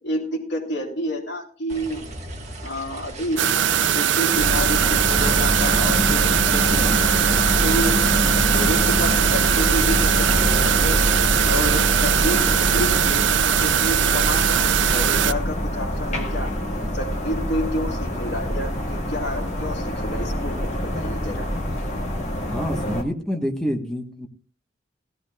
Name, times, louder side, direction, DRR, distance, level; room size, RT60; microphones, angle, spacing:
voice 1, 0.0-2.0 2.6-3.6 3.9-7.1 7.6-8.0 8.3-11.0 11.4-13.3 13.6-16.5 16.9-21.5, equal, 70° left, 0 dB, 3.2 m, -29 dB
sound 1, 1.7-13.1, right 1 dB, 40° right, 1.6 m, -34 dB
sound 2, 3.4-15.3, right 9 dB, 85° right, 0.5 m, -20 dB
sound 3, 4.3-23.0, equal, 40° left, 1.8 m, -25 dB
voice 2, 22.5-24.3, equal, 5° left, 2 dB, 1.3 m, -27 dB
17.0 x 14.0 x 2.4 m, 0.43 s
head